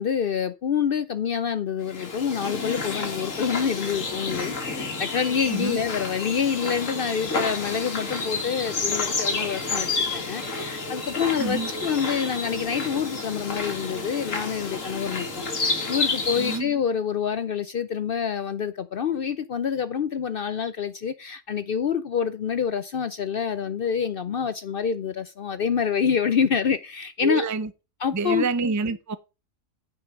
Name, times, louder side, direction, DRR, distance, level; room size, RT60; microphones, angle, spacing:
voice 1, 0.0-15.4 15.9-27.5 28.0-28.5, left 7 dB, 55° left, 0.7 m, -27 dB
sound 1, 1.9-16.6, left 3 dB, 85° left, 2.2 m, -30 dB
voice 2, 5.5-5.8 11.4-11.7 16.4-16.7 27.2-27.7 28.1-29.2, right 4 dB, 25° right, 0.4 m, -27 dB
9.4 x 5.2 x 5.7 m
omnidirectional pair, 1.3 m